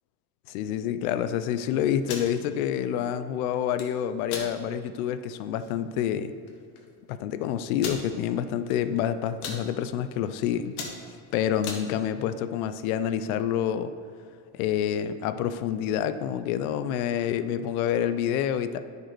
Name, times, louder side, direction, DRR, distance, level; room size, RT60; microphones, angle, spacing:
voice 1, 0.5-6.3 7.1-10.8 11.0-13.9 14.5-18.8, left 9 dB, 90° left, 12 dB, 0.6 m, -28 dB
sound 1, 1.9-2.3 3.5-3.9 4.3-4.5 5.0-5.1 5.5-5.7 6.5-6.6 6.8-6.9 7.8-8.0 8.7-9.0 9.2-9.6 10.2-10.4 10.7-11.8, left 5 dB, 75° left, 1.6 m, -36 dB
10.0 x 5.4 x 4.6 m, 2.3 s
supercardioid pair, 95°, 41 cm